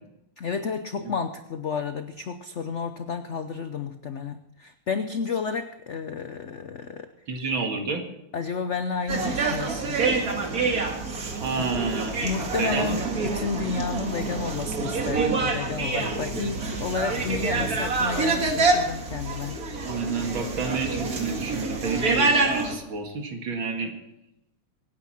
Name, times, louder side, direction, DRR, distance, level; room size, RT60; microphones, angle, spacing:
voice 1, 0.4-7.1 8.3-10.0 11.6-11.7 12.2-19.6, left 5 dB, 75° left, 8 dB, 0.6 m, -31 dB
voice 2, 7.3-8.0 11.4-12.2 12.6-13.0 19.8-23.9, right 4 dB, 65° right, 3 dB, 2.7 m, -29 dB
sound 1, 9.1-22.7, right 3 dB, 45° right, 2.2 m, -27 dB
24.5 x 9.8 x 4.3 m, 0.85 s
omnidirectional pair, 2.3 m